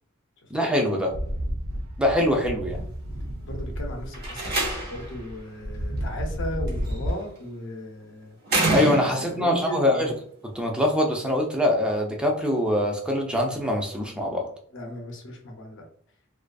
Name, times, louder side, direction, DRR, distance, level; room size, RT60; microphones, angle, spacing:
voice 1, 0.5-1.1 2.0-2.8 8.7-10.1 10.5-14.5, left 1 dB, 5° right, 1 dB, 0.4 m, -23 dB
sound 1, 1.1-7.1, equal, 85° right, 0.5 m, -32 dB
voice 2, 3.4-8.4 9.0-10.1 14.7-15.9, left 1 dB, 60° left, 2 dB, 0.6 m, -36 dB
Slam, 4.1-5.2 6.7-7.1 8.5-9.4, right 2 dB, 50° right, 0.7 m, -26 dB
2.4 x 2.4 x 2.3 m, 0.62 s
head